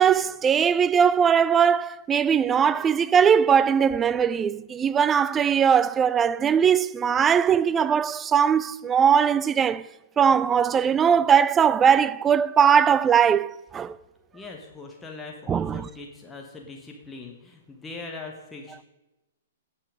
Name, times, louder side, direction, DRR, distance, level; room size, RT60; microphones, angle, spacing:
voice 1, 0.0-9.8 10.2-13.9 15.5-15.9, right 7 dB, 15° right, 0.3 m, -20 dB
voice 2, 14.3-18.9, left 3 dB, 10° left, 1.4 m, -41 dB
17.0 x 5.8 x 5.1 m
figure-of-eight pair, 110°, 0 cm